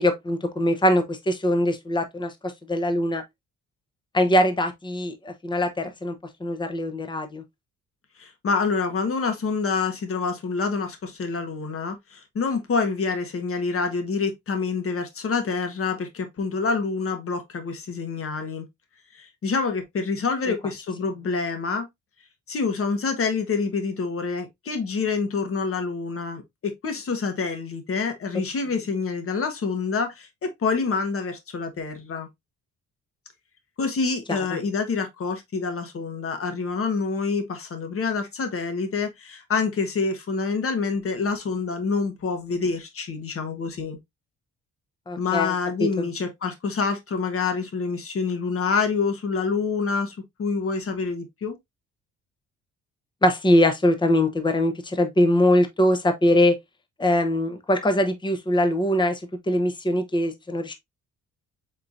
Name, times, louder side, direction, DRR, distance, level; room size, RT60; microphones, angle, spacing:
voice 1, 0.0-3.2 4.1-7.4 20.5-20.6 34.3-34.6 45.1-45.5 45.8-46.1 53.2-56.6 57.0-60.7, left 1 dB, 15° left, 0.8 m, -22 dB
voice 2, 8.2-18.7 19.1-21.9 22.5-32.3 33.8-44.0 45.2-51.6, left 4 dB, 50° left, 1.2 m, -27 dB
4.4 x 3.8 x 2.4 m
cardioid pair, 90°, 30 cm